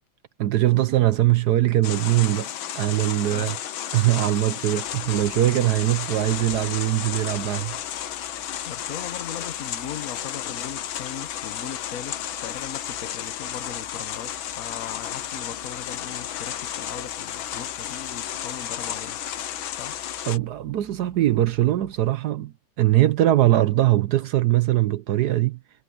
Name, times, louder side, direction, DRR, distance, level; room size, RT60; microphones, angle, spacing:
voice 1, 0.4-2.5 2.7-3.6 3.9-7.8 20.3-25.6, right 14 dB, 70° right, 1.1 m, -21 dB
sound 1, 1.8-20.4, left 11 dB, 85° left, 1.8 m, -33 dB
voice 2, 3.3-3.7 8.6-19.2 19.8-20.0, left 9 dB, 50° left, 1.2 m, -38 dB
sound 2, 4.6-22.1, left 1 dB, 10° left, 2.4 m, -53 dB
omnidirectional pair, 2.1 m